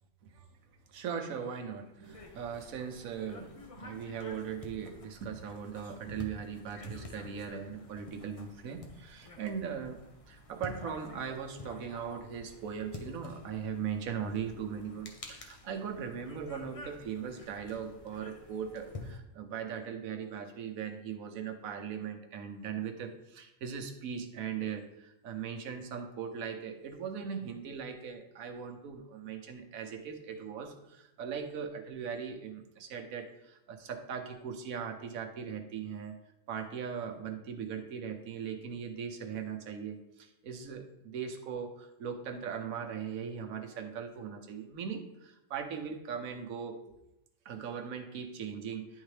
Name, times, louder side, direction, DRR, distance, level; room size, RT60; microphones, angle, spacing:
voice 1, 0.9-36.1 36.5-46.9 47.4-49.0, right 7 dB, 85° right, 6 dB, 1.2 m, -39 dB
sound 1, 2.0-19.2, left 3 dB, 35° left, 0.5 m, -50 dB
10.5 x 3.7 x 3.2 m, 0.88 s
omnidirectional pair, 1.4 m